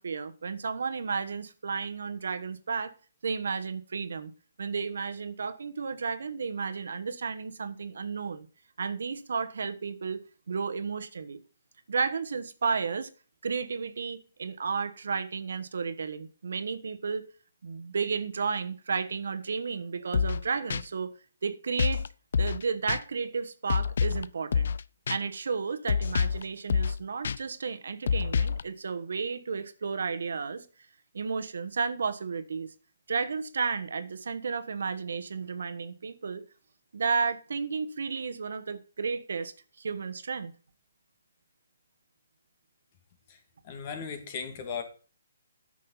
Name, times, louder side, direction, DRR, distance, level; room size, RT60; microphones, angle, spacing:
voice 1, 0.0-2.9 3.2-4.3 4.6-8.5 8.8-10.2 10.5-11.4 11.9-13.1 13.4-17.2 17.6-21.1 21.4-22.0 22.4-24.7 25.1-30.7 31.1-32.7 33.1-36.4 36.9-40.5, right 5 dB, 75° right, 1.2 m, -32 dB
sound 1, 20.1-20.4 20.7-20.8 21.8-22.1 22.3-22.6 22.9-23.0 23.7-24.2 24.5-24.8 25.1-25.2 25.9-26.4 26.7-27.0 27.2-27.4 28.1-28.6, left 6 dB, 70° left, 0.5 m, -26 dB
voice 2, 43.6-44.8, left 6 dB, 35° left, 2.2 m, -36 dB
9.6 x 6.4 x 5.6 m
hypercardioid pair, 155°, 0 cm